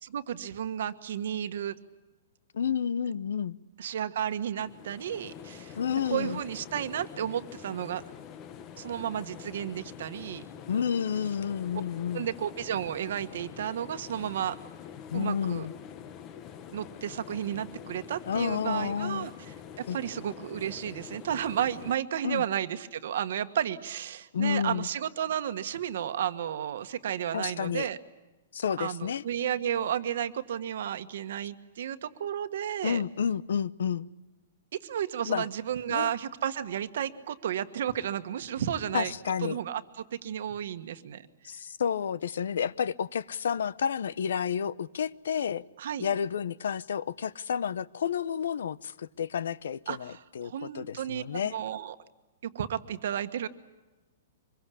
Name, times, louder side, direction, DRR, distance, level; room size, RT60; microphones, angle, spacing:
voice 1, 0.0-1.7 3.8-5.8 6.0-8.0 8.8-10.4 12.1-14.6 15.1-15.7 16.7-19.3 19.8-28.0 28.8-33.0 34.8-39.1 39.4-41.3 45.8-46.0 49.9-51.2 51.5-51.9 52.4-53.5, right 10 dB, 55° right, 1.4 m, -32 dB
voice 2, 2.5-3.6 5.8-6.4 10.7-12.3 15.1-15.7 18.3-19.3 19.8-20.0 22.2-22.4 24.3-24.9 27.3-27.9 28.5-29.2 32.8-34.1 35.3-35.5 35.9-36.1 38.9-39.6 41.4-45.6 46.0-51.6, left 7 dB, 75° left, 0.8 m, -30 dB
sound 1, 4.6-22.0, left 8 dB, 20° left, 0.8 m, -46 dB
25.0 x 22.0 x 8.5 m
hypercardioid pair, 175°, 0 cm